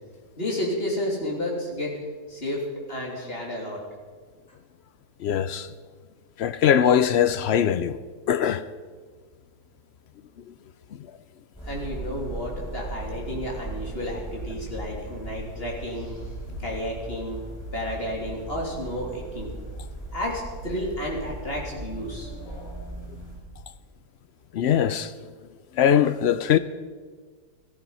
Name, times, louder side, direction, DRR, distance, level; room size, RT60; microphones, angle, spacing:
voice 1, 0.4-1.9 2.3-2.6 2.9-3.8 11.7-16.2 16.6-17.4 17.7-19.5 20.1-22.8, left 1 dB, 35° left, 3.5 m, -31 dB
voice 2, 5.2-5.7 6.4-8.0 8.3-8.6 10.5-10.6 24.5-25.1 25.7-26.6, left 9 dB, 70° left, 0.6 m, -21 dB
sound 1, 11.5-23.4, right 2 dB, 10° left, 6.1 m, -38 dB
15.0 x 14.5 x 5.6 m
omnidirectional pair, 1.7 m